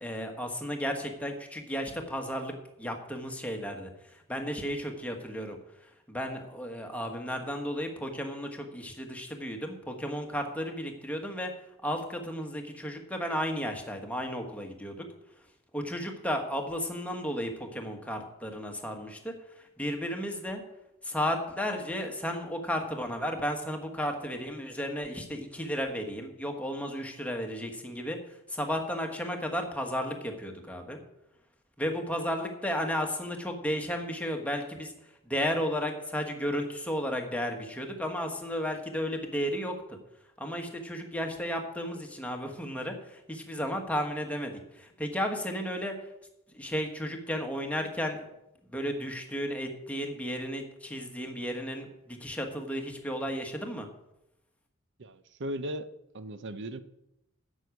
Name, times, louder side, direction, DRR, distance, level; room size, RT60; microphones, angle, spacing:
voice 1, 0.0-11.5 11.8-15.0 15.7-20.6 21.0-31.0 31.8-34.9 35.2-40.0 40.4-45.9 46.5-48.2 48.7-53.9, equal, 5° left, 1.3 m, -34 dB
voice 2, 55.0-56.8, right 1 dB, 55° right, 0.7 m, -37 dB
9.6 x 6.3 x 8.3 m
head